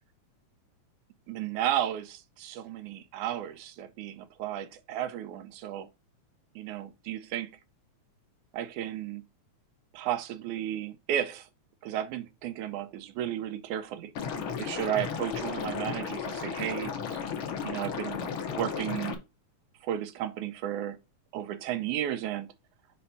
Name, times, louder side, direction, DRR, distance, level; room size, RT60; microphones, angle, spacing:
voice 1, 1.3-5.9 6.6-7.6 8.5-9.2 9.9-11.5 11.8-14.1 14.6-17.2 17.6-18.3 18.6-19.2 19.8-21.0 21.3-22.5, right 11 dB, 85° right, 2.2 m, -33 dB
Liquid, 14.2-19.2, left 6 dB, 60° left, 1.5 m, -34 dB
5.4 x 4.2 x 5.6 m
omnidirectional pair, 3.4 m